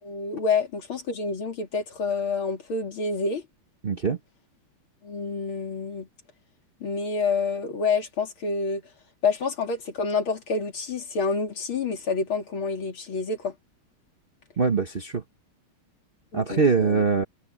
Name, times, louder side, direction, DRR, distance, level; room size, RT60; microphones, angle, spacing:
voice 1, 0.0-3.4 5.0-6.1 6.8-8.8 9.2-13.6 16.3-17.0, left 4 dB, 80° left, 3.6 m, -28 dB
voice 2, 3.8-4.2 14.6-15.2 16.3-17.2, right 5 dB, 35° right, 0.9 m, -23 dB
omnidirectional pair, 2.3 m